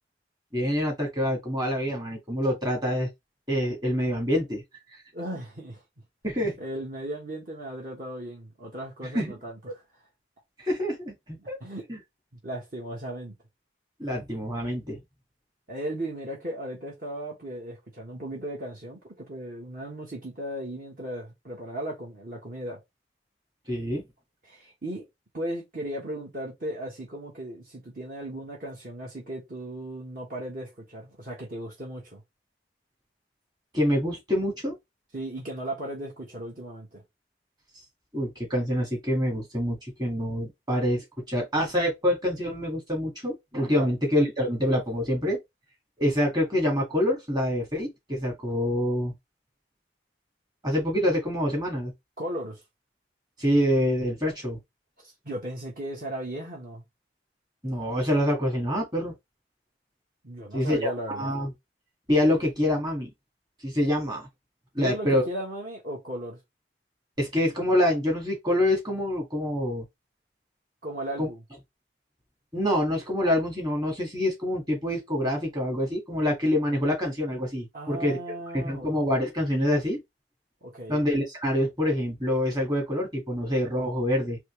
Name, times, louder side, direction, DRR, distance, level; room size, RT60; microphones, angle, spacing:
voice 1, 0.5-3.1 3.5-4.6 6.2-6.6 9.1-9.3 10.6-11.6 11.9-12.0 14.0-15.0 23.7-24.0 33.7-34.7 38.1-45.4 46.0-49.1 50.6-51.9 53.4-54.6 57.6-59.1 60.5-61.5 62.1-63.1 63.6-64.3 64.8-65.2 67.2-69.8 71.2-71.3 72.5-78.2 78.5-80.0 80.9-84.4, left 1 dB, 25° right, 1.8 m, -26 dB
voice 2, 5.1-5.8 6.6-9.8 11.4-11.9 12.3-13.3 15.7-22.8 24.4-25.1 25.3-32.2 35.1-37.0 43.7-43.9 52.2-52.6 55.0-56.8 60.2-61.4 64.8-66.4 70.8-71.4 77.7-79.0 80.6-81.0, right 1 dB, 50° right, 1.4 m, -36 dB
4.2 x 3.0 x 3.2 m
head